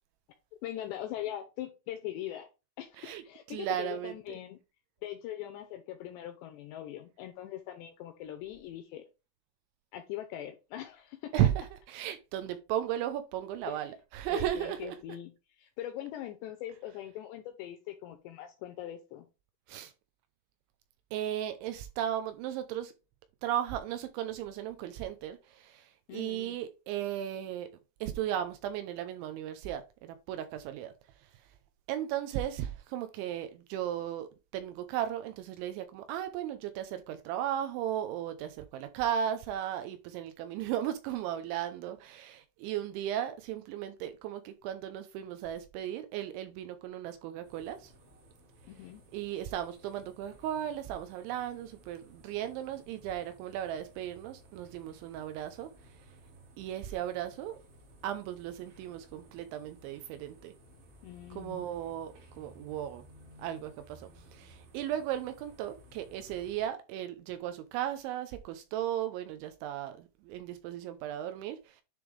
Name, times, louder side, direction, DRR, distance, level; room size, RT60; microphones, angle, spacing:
voice 1, 0.6-2.5 2.8-4.6 5.0-9.1 9.9-11.5 13.7-13.9 14.3-19.3 26.1-26.6 48.7-49.0 61.0-61.6, left 12 dB, 85° left, 2.6 m, -41 dB
voice 2, 3.5-4.1 11.3-15.0 19.7-19.9 21.1-22.9 23.4-27.7 28.0-30.9 31.9-47.9 49.1-55.7 56.6-57.6 58.0-60.5 61.4-63.0 63.4-64.0 64.3-71.8, right 11 dB, 85° right, 2.9 m, -35 dB
sound 1, 47.4-66.7, equal, 70° right, 4.8 m, -57 dB
10.0 x 3.6 x 3.3 m
omnidirectional pair, 5.7 m